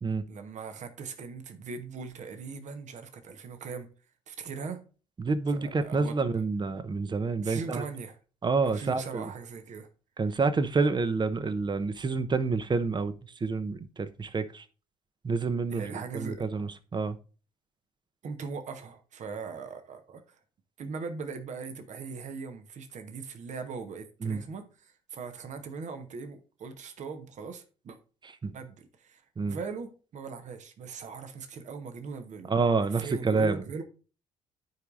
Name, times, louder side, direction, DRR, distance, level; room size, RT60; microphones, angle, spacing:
voice 1, 0.3-3.9 4.3-4.8 5.5-6.4 7.4-8.2 8.6-9.9 15.7-16.5 18.2-20.4 20.8-28.0 28.5-29.2 29.5-32.5 32.8-33.8, right 5 dB, 45° right, 1.2 m, -40 dB
voice 2, 5.2-7.8 8.4-9.3 10.2-13.1 13.4-14.6 15.2-15.8 16.1-17.2 24.2-24.4 28.4-28.5 29.4-29.6 32.5-33.6, right 4 dB, 25° right, 0.9 m, -28 dB
13.5 x 4.7 x 2.6 m
figure-of-eight pair, 50°, 17 cm